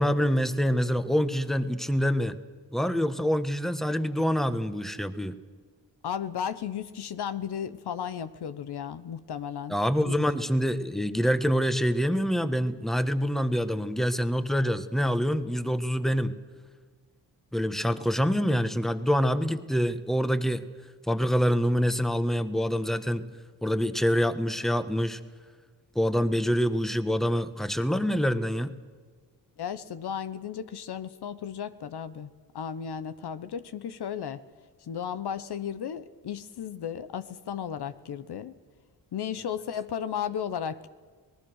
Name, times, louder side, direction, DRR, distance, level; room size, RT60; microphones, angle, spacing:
voice 1, 0.0-2.4 2.7-5.4 9.7-16.4 17.5-20.6 21.1-23.2 23.6-25.2 25.9-28.7, equal, ahead, 11 dB, 1.4 m, -26 dB
voice 2, 6.0-9.8 10.0-10.2 29.6-34.4 34.8-38.5 39.1-40.9, left 8 dB, 70° left, 12 dB, 1.0 m, -34 dB
26.0 x 19.0 x 6.5 m, 1.5 s
cardioid pair, 55°, 41 cm